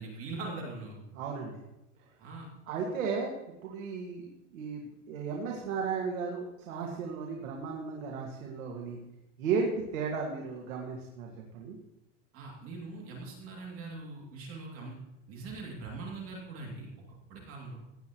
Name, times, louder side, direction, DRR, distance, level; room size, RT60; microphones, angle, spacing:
voice 1, 0.0-1.0 2.2-2.5 12.3-15.0 15.3-16.9 17.3-17.8, right 3 dB, 35° right, -1 dB, 2.6 m, -41 dB
voice 2, 1.1-1.6 2.7-3.3 3.6-9.0 9.4-11.8, right 5 dB, 90° right, 0 dB, 2.0 m, -35 dB
16.5 x 9.7 x 3.0 m, 0.98 s
supercardioid pair, 160°, 39 cm